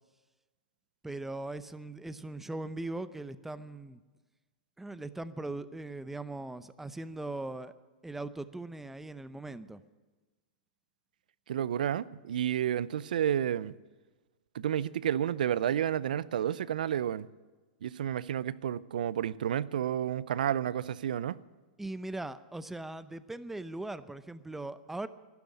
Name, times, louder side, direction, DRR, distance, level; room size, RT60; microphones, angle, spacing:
voice 1, 1.0-4.0 4.8-7.7 8.0-9.8 21.8-25.1, right 2 dB, 5° right, 0.6 m, -40 dB
voice 2, 11.5-13.7 14.5-17.3 17.8-21.3, right 10 dB, 75° right, 0.5 m, -31 dB
11.5 x 11.5 x 9.9 m
hypercardioid pair, 115°, 5 cm